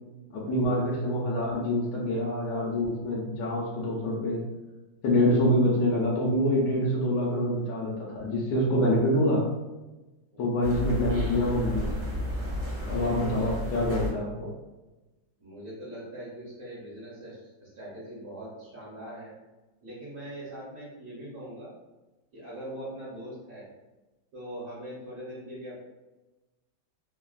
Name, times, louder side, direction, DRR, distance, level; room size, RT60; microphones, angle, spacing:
voice 1, 0.3-4.4 5.0-9.4 10.4-11.9 12.9-14.5, left 1 dB, 70° left, -5 dB, 1.1 m, -26 dB
sound 1, 10.6-14.1, left 2 dB, 35° right, 0.7 m, -32 dB
voice 2, 13.0-13.5 15.4-19.3 19.8-21.7 22.3-23.7 24.3-25.7, right 1 dB, 60° right, -10 dB, 1.2 m, -41 dB
3.2 x 2.2 x 2.3 m, 1.1 s
omnidirectional pair, 2.2 m